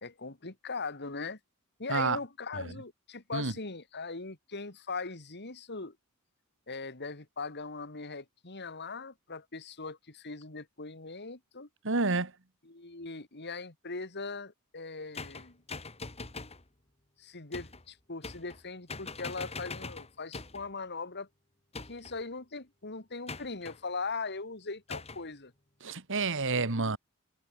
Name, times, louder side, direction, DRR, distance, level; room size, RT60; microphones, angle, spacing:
voice 1, 0.0-1.4 1.8-6.0 6.7-11.7 12.7-15.6 17.2-21.3 21.9-25.5 26.7-27.0, left 4 dB, 50° left, 2.6 m, -40 dB
voice 2, 11.8-12.3 25.8-27.0, right 3 dB, 60° right, 2.0 m, -29 dB
sound 1, 15.1-16.6 17.5-17.8 18.2-18.6 18.9-20.7 21.7-22.2 23.3-23.8 24.9-25.2, left 3 dB, 30° left, 2.6 m, -42 dB
head